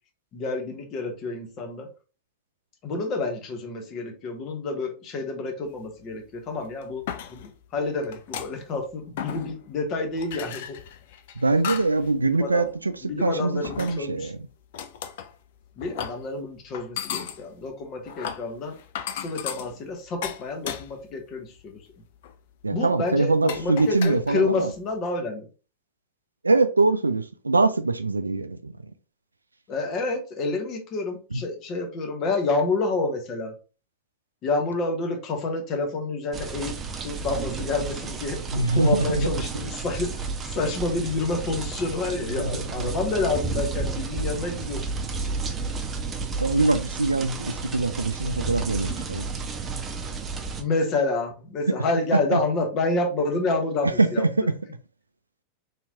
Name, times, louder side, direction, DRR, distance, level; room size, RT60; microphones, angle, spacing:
voice 1, 0.3-1.9 2.8-7.0 7.3-10.8 12.2-12.6 13.0-14.3 15.8-18.8 19.2-21.8 22.7-25.5 29.7-33.5 34.4-36.7 37.0-44.9 50.5-54.5, left 3 dB, 35° left, 0.9 m, -29 dB
sound 1, 6.0-6.1 6.7-7.6 8.0-8.8 9.2-9.8 10.2-12.1 12.5-12.8 13.6-14.3 14.7-15.3 15.8-16.3 16.7-21.2 21.6-21.8 22.2-22.3 23.1-23.2 23.5-24.8, left 9 dB, 55° left, 0.4 m, -36 dB
voice 2, 11.4-12.9 13.2-14.4 22.6-24.7 26.4-28.8 31.3-31.4 38.5-39.3 42.4-42.9 46.4-49.3 52.3-52.4 54.0-54.5, right 3 dB, 80° right, 0.3 m, -23 dB
sound 2, 36.3-50.6, right 4 dB, 20° right, 0.5 m, -32 dB
3.3 x 2.9 x 2.8 m
figure-of-eight pair, 90°, 0 cm